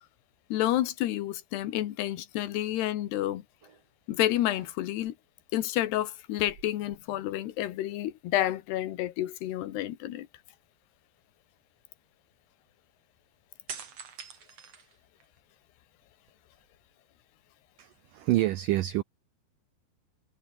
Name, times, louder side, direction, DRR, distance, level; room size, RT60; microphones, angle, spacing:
voice 1, 0.5-3.4 4.1-5.1 5.5-10.3, left 14 dB, 75° left, 3.5 m, -29 dB
sound 1, 3.6-3.9 4.3-5.1 6.3-7.6 7.9-8.0 13.7-15.5 16.0-16.9, right 6 dB, 40° right, 3.3 m, -47 dB
voice 2, 17.8-19.0, right 16 dB, 80° right, 1.9 m, -27 dB
omnidirectional pair, 4.8 m